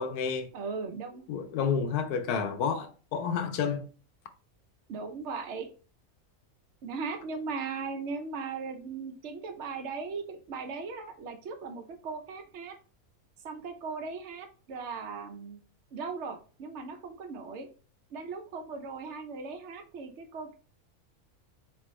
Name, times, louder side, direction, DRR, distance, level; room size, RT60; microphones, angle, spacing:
voice 1, 0.0-0.5 1.3-3.8, left 6 dB, 90° left, 1.2 m, -30 dB
voice 2, 0.5-1.2 2.3-2.4 4.9-5.7 6.8-12.8 13.4-15.6 15.9-17.7 18.1-20.6, right 4 dB, 55° right, 0.9 m, -38 dB
4.3 x 3.4 x 3.1 m
omnidirectional pair, 1.6 m